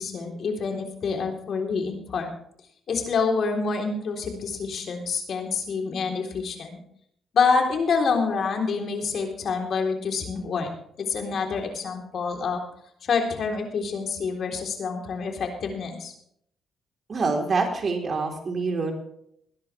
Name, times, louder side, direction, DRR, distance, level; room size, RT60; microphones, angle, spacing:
voice 1, 0.0-2.3 2.9-6.8 7.3-10.7 11.0-12.6 13.0-16.1, left 5 dB, 60° left, 3 dB, 3.7 m, -27 dB
voice 2, 17.1-18.9, right 4 dB, 45° right, 3 dB, 3.8 m, -26 dB
20.5 x 11.0 x 3.4 m, 0.68 s
cardioid pair, 90°, 0 cm